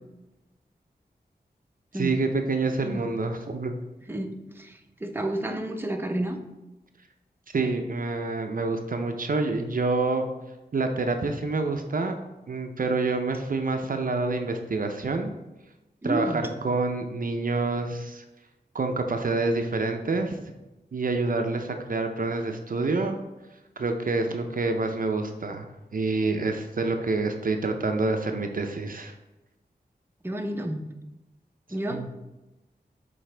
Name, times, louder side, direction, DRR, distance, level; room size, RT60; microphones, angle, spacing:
voice 1, 1.9-3.7 7.5-10.3 10.7-12.2 12.5-15.3 16.0-18.2 18.7-20.4 20.9-23.2 23.8-29.1 31.9-32.1, right 3 dB, 55° right, 5 dB, 0.6 m, -27 dB
voice 2, 4.1-6.4 16.0-16.4 30.2-30.8 31.7-32.0, right 1 dB, 15° right, 3 dB, 0.7 m, -30 dB
7.5 x 4.0 x 3.3 m, 1.0 s
wide cardioid pair, 60°, 17 cm